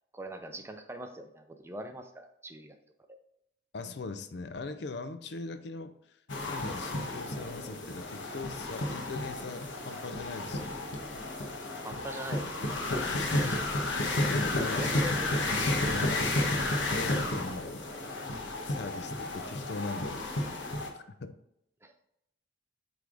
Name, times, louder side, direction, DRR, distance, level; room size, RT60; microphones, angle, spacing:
voice 1, 0.1-2.8 3.1-3.2 11.8-12.8 13.4-13.6 14.8-15.8 21.8-21.9, right 1 dB, 15° right, 6 dB, 0.4 m, -42 dB
voice 2, 3.7-5.9 6.5-10.8 13.1-13.6 14.3-14.9 15.8-16.3 16.9-17.8 18.6-20.3 20.9-21.3, left 3 dB, 55° left, 10 dB, 0.4 m, -40 dB
sound 1, 6.3-20.9, left 2 dB, 75° left, 1.1 m, -32 dB
8.1 x 3.4 x 3.8 m, 0.80 s
head